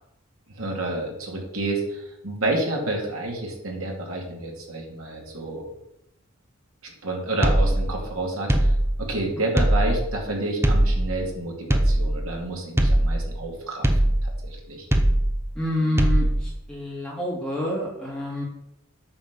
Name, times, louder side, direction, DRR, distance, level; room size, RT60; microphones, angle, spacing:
voice 1, 0.6-5.7 6.8-8.7 9.0-13.9 14.2-14.9, right 2 dB, 75° right, 0 dB, 2.3 m, -29 dB
sound 1, 7.4-8.1 8.5-9.2 9.6-10.3 10.6-11.3 11.7-12.4 12.8-13.5 13.8-14.5 14.9-15.6 16.0-16.6, right 1 dB, 10° right, 0.7 m, -21 dB
voice 2, 15.5-18.4, left 1 dB, 5° left, -5 dB, 2.4 m, -28 dB
8.6 x 4.3 x 6.8 m, 0.81 s
head